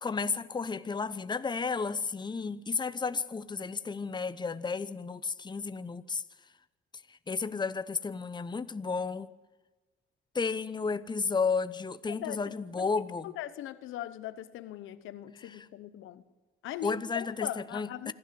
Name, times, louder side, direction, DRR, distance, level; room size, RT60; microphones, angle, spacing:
voice 1, 0.0-6.2 7.1-9.3 10.3-13.3 15.4-15.5 16.8-18.1, left 4 dB, 20° left, 0.8 m, -32 dB
voice 2, 12.1-12.9 13.2-16.2 16.6-18.1, left 13 dB, 90° left, 1.1 m, -40 dB
26.0 x 13.0 x 7.8 m
cardioid pair, 90°, 20 cm